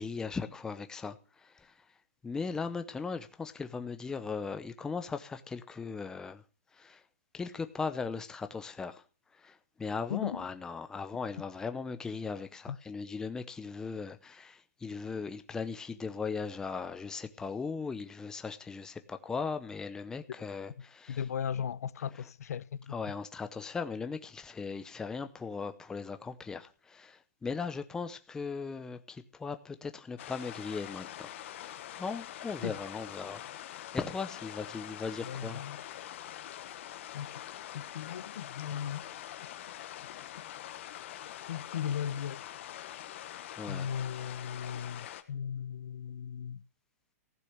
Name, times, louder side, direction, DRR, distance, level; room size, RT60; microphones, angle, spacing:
voice 1, 0.0-1.9 2.2-6.4 6.7-7.0 7.3-9.0 9.3-21.2 22.9-31.3 31.9-35.6 43.6-43.9, left 5 dB, 5° left, 0.7 m, -38 dB
voice 2, 10.1-10.4 12.7-12.8 21.1-23.0 32.6-32.8 35.2-35.8 37.1-37.3 37.7-39.0 41.5-42.4 43.7-46.6, left 8 dB, 75° left, 0.8 m, -37 dB
sound 1, 30.2-45.2, left 12 dB, 50° left, 1.3 m, -44 dB
15.5 x 6.7 x 8.0 m
hypercardioid pair, 155°, 9 cm